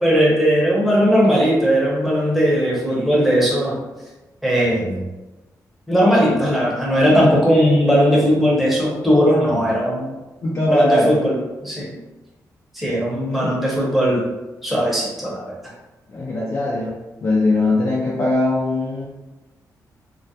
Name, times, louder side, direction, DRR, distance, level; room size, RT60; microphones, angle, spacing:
voice 1, 0.0-3.8 4.4-5.1 5.9-10.1 10.7-12.0 12.7-14.2 14.6-15.5, equal, ahead, -5 dB, 0.7 m, -18 dB
voice 2, 10.4-11.2 13.4-13.5 16.1-16.9 17.2-19.1, left 2 dB, 45° left, -6 dB, 0.5 m, -20 dB
2.2 x 2.1 x 2.7 m, 1.1 s
cardioid pair, 115°, 7 cm